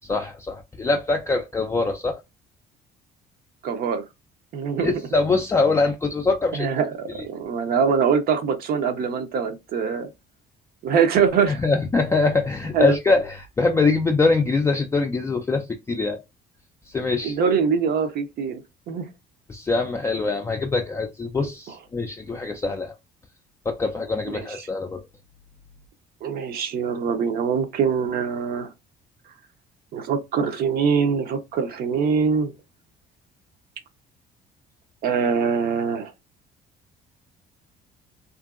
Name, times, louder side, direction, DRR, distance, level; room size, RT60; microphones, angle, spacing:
voice 1, 0.0-2.2 4.8-6.7 7.1-7.2 11.5-16.2 16.9-17.4 19.5-22.9 23.7-25.0, left 3 dB, 15° left, 0.3 m, -23 dB
voice 2, 3.6-4.0 4.5-5.0 6.5-10.1 10.8-11.6 12.7-13.0 17.2-18.6 18.9-19.1 21.4-21.5 24.3-24.6 26.2-28.7 29.9-32.5 35.0-36.1, right 6 dB, 65° right, 0.7 m, -23 dB
2.8 x 2.5 x 2.3 m
cardioid pair, 110°, 17 cm